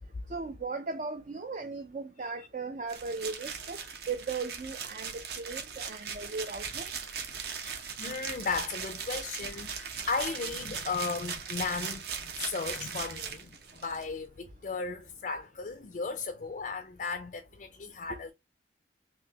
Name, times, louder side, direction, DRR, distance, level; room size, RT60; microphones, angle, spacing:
voice 1, 0.3-3.8 4.1-6.9, right 4 dB, 40° right, 0.4 m, -37 dB
sound 1, 2.9-14.1, right 6 dB, 55° right, 0.8 m, -39 dB
voice 2, 7.5-18.3, left 4 dB, 45° left, 0.4 m, -36 dB
3.9 x 2.8 x 2.7 m
head